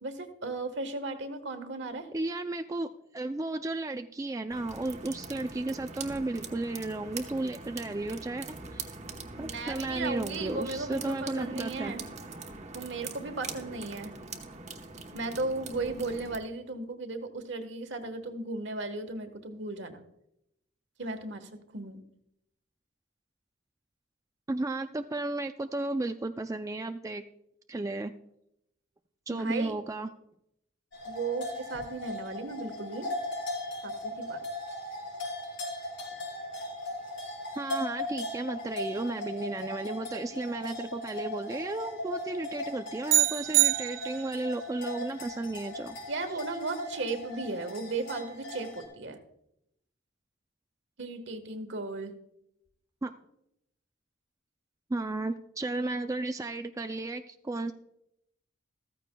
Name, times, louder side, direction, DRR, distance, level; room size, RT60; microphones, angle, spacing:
voice 1, 0.0-2.1 9.4-12.0 12.7-14.1 15.1-20.0 21.0-22.0 29.3-29.7 31.0-33.1 33.8-34.4 46.1-49.2 51.0-52.1, right 3 dB, 65° right, 7 dB, 1.3 m, -36 dB
voice 2, 2.1-8.9 9.4-11.9 24.5-27.2 27.7-28.1 29.3-30.1 37.6-46.0 53.0-53.1 54.9-57.7, right 2 dB, 15° right, 7 dB, 0.3 m, -34 dB
sound 1, 4.5-16.4, right 4 dB, 35° right, 1.0 m, -43 dB
sound 2, 30.9-48.8, left 1 dB, 85° left, 5.1 m, -38 dB
sound 3, 43.1-44.5, right 15 dB, 90° right, 0.5 m, -25 dB
14.5 x 14.5 x 2.2 m, 0.80 s
head